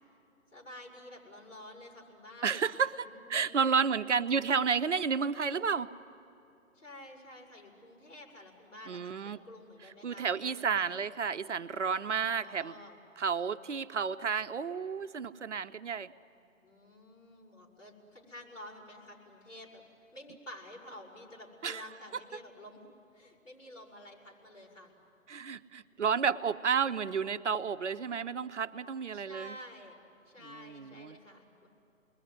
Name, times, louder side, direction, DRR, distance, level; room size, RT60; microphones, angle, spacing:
voice 1, 0.5-2.5 3.0-3.8 6.7-11.0 12.0-13.0 16.6-19.8 20.1-22.8 23.1-24.9 29.1-30.0 30.2-31.7, left 1 dB, 60° left, -2 dB, 6.4 m, -50 dB
voice 2, 2.4-5.9 8.9-9.4 10.0-12.7 13.2-16.1 21.6-21.8 25.3-29.6 30.6-31.2, right 6 dB, 60° right, 11 dB, 0.8 m, -31 dB
29.0 x 21.0 x 9.6 m, 2.8 s
figure-of-eight pair, 145°, 41 cm